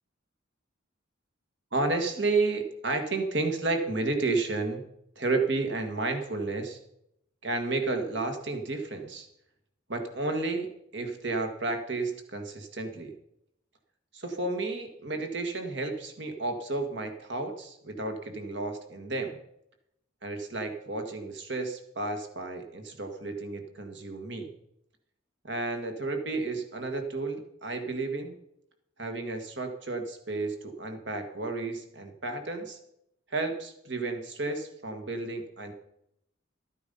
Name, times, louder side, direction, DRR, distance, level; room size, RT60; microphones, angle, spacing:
voice 1, 1.7-4.9 5.2-6.8 7.4-9.3 9.9-13.1 14.1-19.4 20.2-24.5 25.4-28.4 29.0-32.8 33.3-35.7, right 3 dB, 60° right, 5 dB, 1.8 m, -32 dB
13.0 x 9.5 x 5.5 m, 0.78 s
head